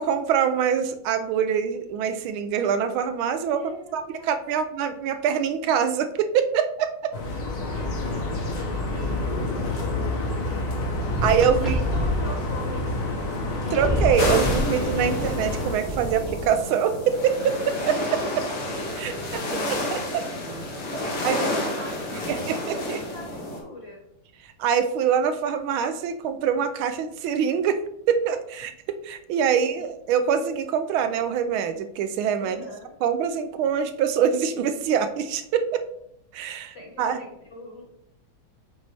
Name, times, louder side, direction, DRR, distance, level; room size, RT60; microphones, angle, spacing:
voice 1, 0.0-3.6 3.9-7.1 11.2-11.8 13.7-17.6 17.9-18.4 19.0-20.2 21.2-21.4 22.3-23.0 24.6-27.8 28.1-28.7 29.0-32.6 33.0-35.8 36.3-37.2, right 8 dB, 85° right, 9 dB, 1.5 m, -24 dB
voice 2, 3.5-4.6 7.1-7.3 7.6-11.0 11.6-13.1 18.4-20.5 20.9-24.0 29.5-29.9 32.4-32.9 36.5-37.8, left 2 dB, 35° left, -1 dB, 1.5 m, -43 dB
sound 1, 7.1-15.7, left 2 dB, 55° left, 1.5 m, -28 dB
sound 2, 11.1-12.2 13.3-13.4 13.5-14.7 15.6-16.5, left 1 dB, ahead, 0.9 m, -27 dB
sound 3, 14.2-23.6, left 1 dB, 85° left, 2.2 m, -30 dB
7.3 x 4.0 x 3.4 m, 0.76 s
omnidirectional pair, 2.2 m